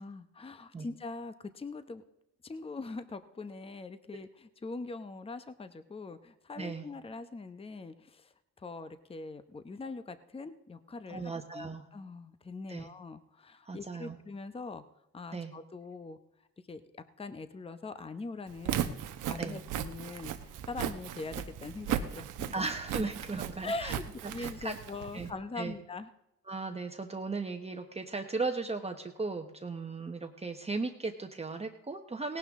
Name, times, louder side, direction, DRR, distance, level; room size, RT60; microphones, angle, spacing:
voice 1, 0.0-2.0 2.4-14.8 15.1-16.2 16.7-19.0 19.3-22.5 23.0-23.1 23.6-26.1, left 3 dB, 20° left, 11 dB, 0.8 m, -42 dB
voice 2, 11.1-11.8 12.7-12.9 13.6-14.2 15.3-15.5 19.4-19.6 22.5-24.0 24.4-24.8 25.1-25.3 25.6-25.7 26.5-32.4, right 3 dB, 20° right, 4 dB, 1.1 m, -36 dB
Walk footsteps, 18.5-25.3, right 10 dB, 85° right, 1.0 m, -37 dB
18.0 x 11.5 x 3.7 m, 0.86 s
cardioid pair, 90°, 30 cm